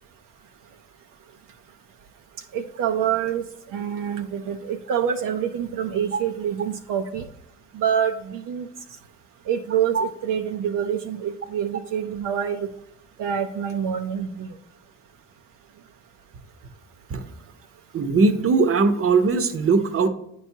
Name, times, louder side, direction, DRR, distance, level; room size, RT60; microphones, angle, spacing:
voice 1, 2.5-3.4 3.7-7.3 7.7-8.7 9.5-12.7 13.2-14.5, right 8 dB, 75° right, 5 dB, 0.6 m, -26 dB
voice 2, 17.9-20.1, right 4 dB, 40° right, 9 dB, 0.8 m, -20 dB
8.9 x 4.7 x 2.7 m, 0.77 s
supercardioid pair, 65°, 33 cm